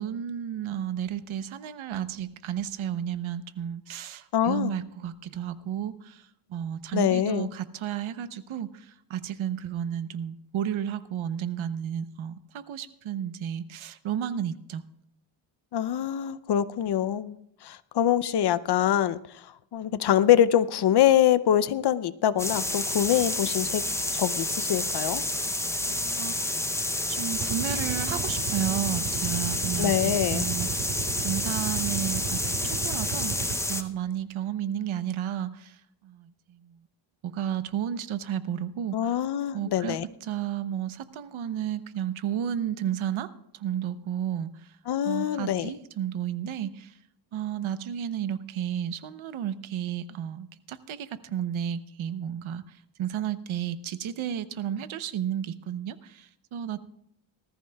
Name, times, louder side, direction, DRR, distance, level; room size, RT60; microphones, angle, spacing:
voice 1, 0.0-14.8 25.9-26.7 27.1-33.4 33.7-36.8 37.2-39.2 39.5-44.8 45.0-47.0 47.3-56.8, right 9 dB, 80° right, 13 dB, 0.8 m, -32 dB
voice 2, 4.3-4.7 6.9-7.5 15.7-17.4 17.6-19.4 19.7-23.8 24.1-25.2 29.8-30.4 38.9-40.0 44.9-45.7, left 10 dB, 55° left, 16 dB, 0.6 m, -24 dB
sound 1, 22.4-33.8, left 1 dB, 5° left, 0.6 m, -29 dB
sound 2, 27.3-33.9, right 8 dB, 35° right, 0.6 m, -35 dB
19.5 x 14.0 x 2.3 m, 0.78 s
wide cardioid pair, 120°, 48 cm